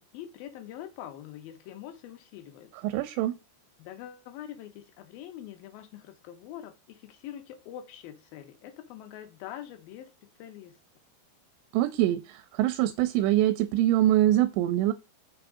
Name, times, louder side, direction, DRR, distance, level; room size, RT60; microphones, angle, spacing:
voice 1, 0.0-2.9 3.8-10.8, left 11 dB, 75° left, 2.3 m, -44 dB
voice 2, 2.8-3.4 11.7-14.9, right 13 dB, 85° right, 2.7 m, -24 dB
6.3 x 3.6 x 4.8 m
omnidirectional pair, 4.9 m